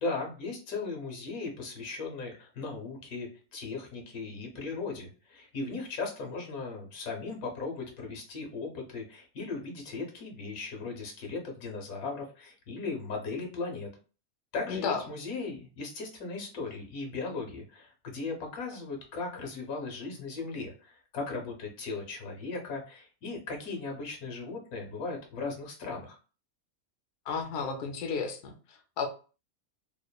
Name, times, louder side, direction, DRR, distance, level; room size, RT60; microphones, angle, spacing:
voice 1, 0.0-13.9 14.5-26.2, left 3 dB, 85° left, 2 dB, 1.3 m, -37 dB
voice 2, 14.7-15.0 27.3-29.1, left 5 dB, 65° left, 4 dB, 0.8 m, -33 dB
3.0 x 2.1 x 2.2 m, 0.36 s
omnidirectional pair, 1.5 m